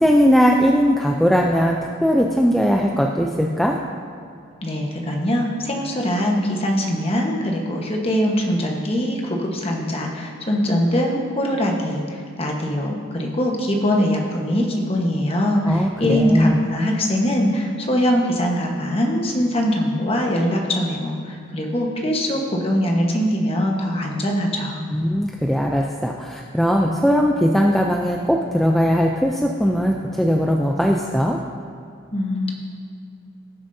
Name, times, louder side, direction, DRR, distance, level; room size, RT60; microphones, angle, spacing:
voice 1, 0.0-3.8 15.6-16.6 24.9-31.4, equal, ahead, 0 dB, 0.4 m, -19 dB
voice 2, 4.6-24.8 32.1-32.5, equal, 30° left, 0 dB, 1.2 m, -22 dB
17.5 x 7.1 x 2.7 m, 2.4 s
head